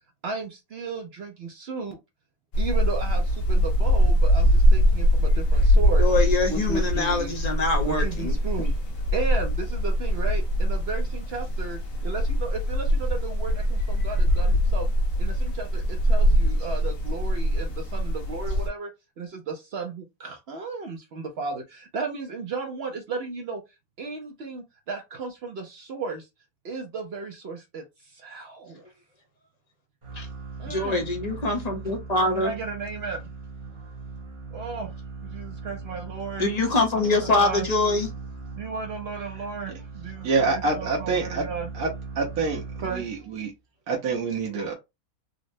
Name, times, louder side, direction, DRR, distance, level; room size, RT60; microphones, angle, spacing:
voice 1, 0.2-2.0 2.6-6.1 6.5-7.3 7.8-8.7 9.1-14.9 15.2-18.9 19.2-23.6 24.0-26.3 26.6-28.9 30.6-31.0 32.3-33.3 34.5-35.0 35.2-36.5 37.0-37.7 38.6-41.7 42.8-43.1, right 4 dB, 60° right, 0.7 m, -34 dB
sound 1, 2.5-18.7, equal, 65° left, 1.3 m, -22 dB
voice 2, 6.0-8.4 30.2-30.3 30.7-32.5 36.4-38.1, left 2 dB, 40° left, 0.6 m, -24 dB
sound 2, 30.0-43.4, right 4 dB, 25° right, 0.7 m, -39 dB
voice 3, 40.2-41.4 41.7-41.9 42.2-42.6 42.9-43.5 43.9-44.7, right 4 dB, 80° right, 1.2 m, -26 dB
4.0 x 2.0 x 2.5 m
omnidirectional pair, 1.6 m